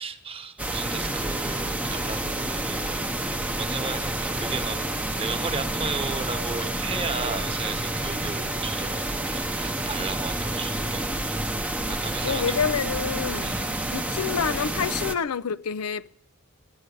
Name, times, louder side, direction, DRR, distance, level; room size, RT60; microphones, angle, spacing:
voice 1, 0.0-12.6 13.4-13.7, right 4 dB, 25° right, 1.1 m, -35 dB
sound 1, 0.6-15.1, right 1 dB, 5° right, 0.7 m, -29 dB
sound 2, 0.9-11.4, left 2 dB, 45° left, 0.6 m, -46 dB
voice 2, 12.2-13.6 13.9-16.1, left 7 dB, 85° left, 0.5 m, -28 dB
13.0 x 10.5 x 9.7 m
head